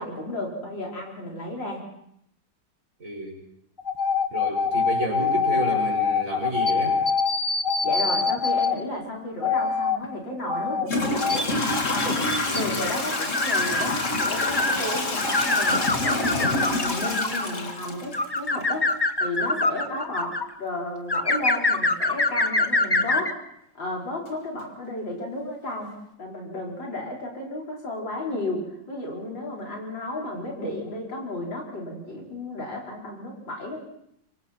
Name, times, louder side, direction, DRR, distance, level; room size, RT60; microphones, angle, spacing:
voice 1, 0.0-1.9 7.8-11.6 11.9-23.4 23.8-25.9 26.2-33.9, left 1 dB, 75° left, -2 dB, 5.3 m, -33 dB
voice 2, 3.0-3.4 4.3-7.0, right 2 dB, 45° right, 1 dB, 5.7 m, -30 dB
sound 1, 3.8-8.7 9.4-10.0 10.5-10.8 11.2-14.8 15.2-17.6 18.1-20.4 21.1-23.3, left 4 dB, 15° left, 0.9 m, -24 dB
Toilet flush / Trickle dribble, 10.0-10.1 10.8-18.6, left 2 dB, 40° left, 2.3 m, -27 dB
25.0 x 25.0 x 4.4 m, 0.75 s
omnidirectional pair, 2.0 m